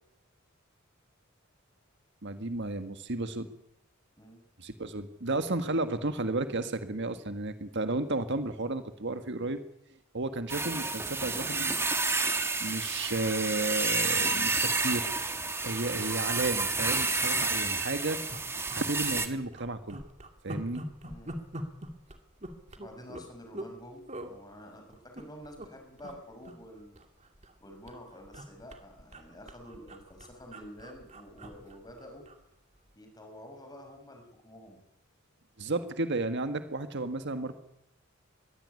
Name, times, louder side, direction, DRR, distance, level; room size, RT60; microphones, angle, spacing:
voice 1, 2.2-3.5 4.6-9.6 10.1-11.7 12.6-15.1 15.6-18.2 18.7-20.0 20.4-20.8 35.6-37.6, right 2 dB, 60° right, 9 dB, 1.6 m, -33 dB
sound 1, 10.5-19.3, right 3 dB, 10° right, 1.6 m, -30 dB
sound 2, 15.3-15.5 15.8-15.9 16.0-16.3 16.8-17.4 17.8-17.9 18.3-19.2 19.5-23.7 24.1-24.3 24.9-25.7 26.0-26.2 26.4-27.6 27.9-32.4 32.8-32.9, right 1 dB, 35° right, 2.6 m, -44 dB
voice 2, 21.0-21.4 22.7-27.0 27.6-32.3 32.9-34.8, equal, 20° left, 4 dB, 6.0 m, -49 dB
22.0 x 16.5 x 9.7 m, 0.81 s
head